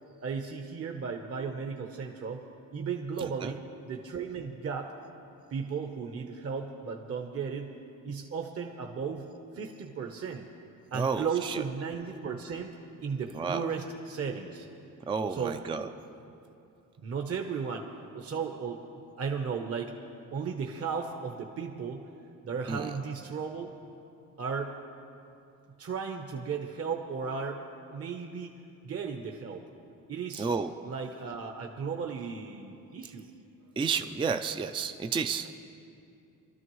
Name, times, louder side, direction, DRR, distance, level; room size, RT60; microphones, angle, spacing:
voice 1, 0.2-2.4 2.7-3.6 3.9-4.9 5.5-7.7 8.0-9.3 9.5-10.5 10.9-12.7 13.0-14.7 15.3-15.6 17.0-17.9 18.1-18.9 19.2-19.9 20.3-22.0 22.4-23.7 24.4-24.7 25.8-27.6 27.9-29.6 30.1-30.5 30.8-33.3, right 6 dB, 45° right, 3 dB, 0.9 m, -35 dB
voice 2, 3.2-3.5 10.9-11.6 13.3-13.6 15.1-15.9 22.7-22.9 30.4-30.7 33.8-35.5, right 5 dB, 15° right, 8 dB, 0.4 m, -31 dB
25.5 x 13.0 x 3.1 m, 2.7 s
cardioid pair, 145°, 35 cm